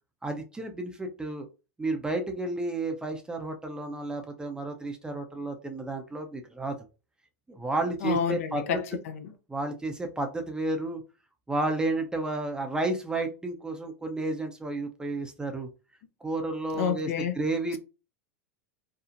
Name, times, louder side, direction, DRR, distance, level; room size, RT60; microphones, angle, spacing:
voice 1, 0.2-1.5 1.8-6.8 7.5-8.6 9.5-11.0 11.5-15.7 16.2-17.1 17.3-17.8, right 2 dB, 10° right, 0.4 m, -31 dB
voice 2, 8.0-9.3 16.8-17.3, left 7 dB, 65° left, 0.5 m, -29 dB
2.6 x 2.0 x 2.5 m
hypercardioid pair, 95°, 8 cm